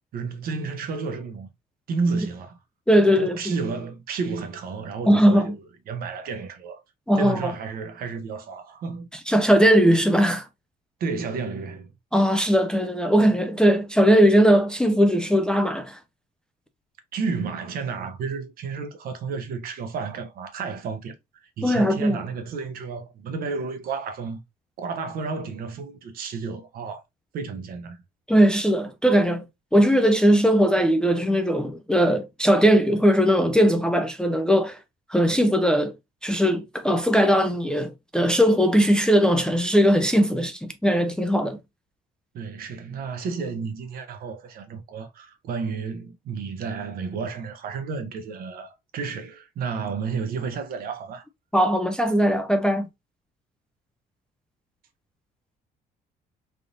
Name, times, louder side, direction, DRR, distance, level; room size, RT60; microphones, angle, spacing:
voice 1, 0.1-1.5 1.9-2.6 3.2-5.6 5.9-6.8 7.2-9.1 11.0-11.9 17.1-24.4 24.8-27.0 27.3-28.0 42.3-51.3, right 5 dB, 60° right, 0.7 m, -31 dB
voice 2, 2.9-3.6 5.1-5.5 7.1-7.5 9.3-10.5 12.1-16.0 21.6-22.2 28.3-29.4 29.7-34.8 35.1-35.9 36.2-41.6 51.5-52.9, equal, 5° left, 0.3 m, -19 dB
3.4 x 2.6 x 2.5 m
cardioid pair, 110°, 17 cm